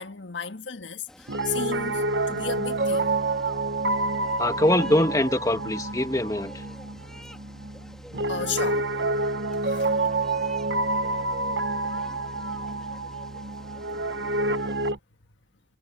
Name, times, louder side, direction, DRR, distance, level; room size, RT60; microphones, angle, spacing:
voice 1, 0.0-3.2 6.9-7.0 7.8-8.9 9.6-10.1, left 6 dB, 85° left, 1.6 m, -35 dB
sound 1, 1.1-14.9, equal, 5° left, 2.8 m, -49 dB
Piano, 1.3-15.0, right 2 dB, 70° right, 1.3 m, -28 dB
voice 2, 4.4-6.6, left 1 dB, 20° left, 1.9 m, -23 dB
head